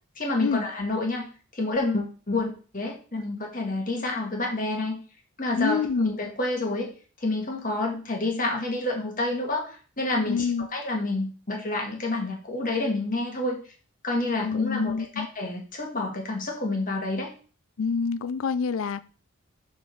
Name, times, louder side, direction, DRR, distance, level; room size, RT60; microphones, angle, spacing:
voice 1, 0.2-1.3 1.5-5.0 5.4-6.9 7.2-13.6 14.0-17.3, left 2 dB, 40° left, 1.7 m, -28 dB
voice 2, 5.6-6.1 10.3-10.7 14.4-15.3 17.8-19.0, left 5 dB, 65° left, 0.4 m, -27 dB
7.7 x 3.7 x 6.2 m
head